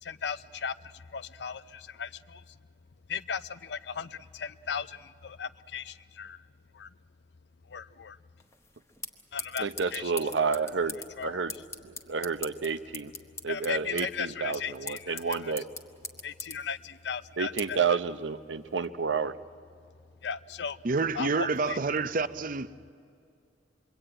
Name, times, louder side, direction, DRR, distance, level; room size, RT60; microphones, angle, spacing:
voice 1, 0.0-2.6 3.1-6.5 6.7-6.9 7.7-8.2 9.3-10.1 10.5-10.6 11.2-11.3 13.5-15.5 16.2-17.8 20.2-20.8 21.1-21.8, left 6 dB, 65° left, 0.6 m, -37 dB
sound 1, 8.4-18.9, left 3 dB, 15° left, 1.2 m, -44 dB
voice 2, 9.6-11.0 11.2-11.5 11.8-13.1 13.4-15.7 17.4-19.3, right 5 dB, 85° right, 0.8 m, -30 dB
voice 3, 20.8-22.7, right 4 dB, 50° right, 0.6 m, -28 dB
26.0 x 22.5 x 8.9 m
head